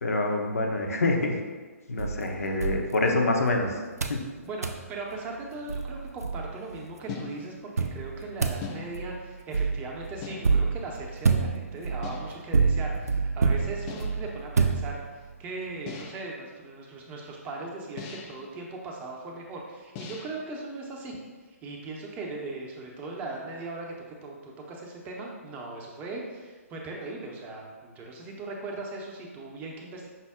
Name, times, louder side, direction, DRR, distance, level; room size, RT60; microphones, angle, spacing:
voice 1, 0.0-1.4 1.9-3.8 4.1-4.2, left 2 dB, 70° left, 2 dB, 0.6 m, -26 dB
sound 1, 2.0-3.5 4.0-4.3 4.6-4.9 5.4-5.5 5.7-6.8 7.8-15.3, right 4 dB, 85° right, 0.4 m, -28 dB
voice 2, 4.4-21.2 21.6-30.1, right 2 dB, 20° right, 0 dB, 0.6 m, -39 dB
sound 2, 7.1-7.7 8.6-9.3 10.2-10.8 12.0-12.5 13.9-14.4 15.9-16.4 18.0-18.5 20.0-20.5, left 5 dB, 25° left, 0.3 m, -41 dB
5.6 x 2.0 x 3.5 m, 1.4 s
figure-of-eight pair, 130°, 8 cm